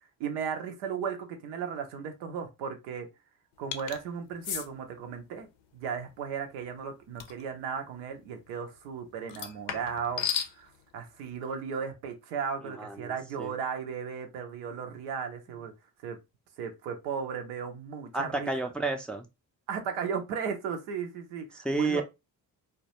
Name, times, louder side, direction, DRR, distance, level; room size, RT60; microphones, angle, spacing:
voice 1, 0.0-3.1 3.6-5.5 5.7-10.3 10.5-15.7 16.0-16.2 16.6-18.5 19.7-22.0, right 6 dB, 85° right, 0.6 m, -36 dB
sound 1, 3.7-4.0 4.4-4.7 7.2-7.4 9.3-10.5, left 8 dB, 65° left, 0.5 m, -33 dB
voice 2, 12.8-13.1 13.4-13.5 18.1-19.3 21.6-22.0, right 3 dB, ahead, 0.4 m, -30 dB
2.2 x 2.1 x 2.8 m
hypercardioid pair, 45°, 47 cm